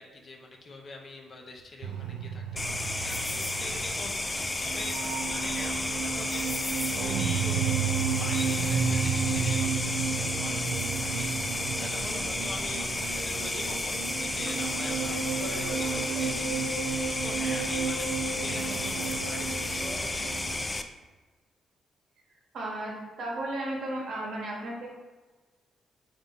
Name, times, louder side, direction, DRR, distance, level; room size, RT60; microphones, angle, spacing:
voice 1, 0.0-6.5 7.0-20.7, left 2 dB, 50° left, 1 dB, 0.7 m, -44 dB
sound 1, 1.8-20.6, right 6 dB, 85° right, 0.3 m, -32 dB
sound 2, 2.6-20.8, left 2 dB, 20° left, 0.3 m, -32 dB
Speech, 14.7-20.6, right 1 dB, 30° right, 0.8 m, -48 dB
voice 2, 22.5-24.9, right 1 dB, 65° right, -2 dB, 1.0 m, -34 dB
3.9 x 2.6 x 3.5 m, 1.3 s
supercardioid pair, 50°, 0 cm